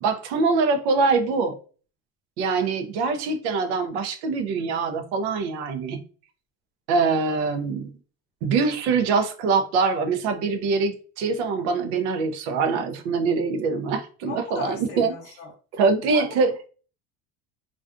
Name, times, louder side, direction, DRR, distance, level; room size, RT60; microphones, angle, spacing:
voice 1, 0.0-1.6 2.4-6.0 6.9-7.9 8.4-15.1 15.7-16.7, right 4 dB, 85° right, 0.6 m, -24 dB
voice 2, 14.3-15.5 16.1-16.3, left 3 dB, 30° left, 0.8 m, -36 dB
2.5 x 2.3 x 2.4 m
cardioid pair, 140°, 33 cm